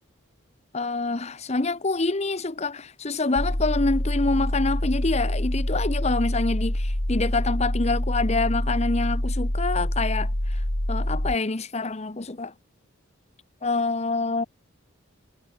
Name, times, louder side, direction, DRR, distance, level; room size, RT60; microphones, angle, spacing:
voice 1, 0.7-10.6 10.9-12.5 13.6-14.4, left 3 dB, 30° left, 0.9 m, -26 dB
sound 1, 3.4-11.4, left 1 dB, 75° left, 3.8 m, -26 dB
head